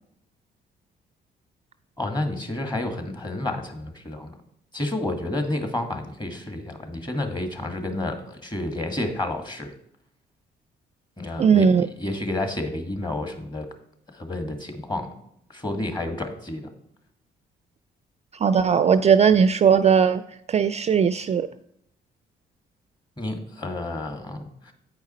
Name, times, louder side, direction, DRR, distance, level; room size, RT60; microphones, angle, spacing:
voice 1, 2.0-4.3 4.7-9.7 11.2-13.7 14.1-15.1 15.5-16.6 23.2-24.7, left 1 dB, 20° left, 5 dB, 1.8 m, -30 dB
voice 2, 11.4-11.9 18.4-20.2 20.5-21.5, right 7 dB, 35° right, 13 dB, 0.3 m, -18 dB
8.8 x 4.8 x 4.2 m, 0.74 s
hypercardioid pair, 55°, 21 cm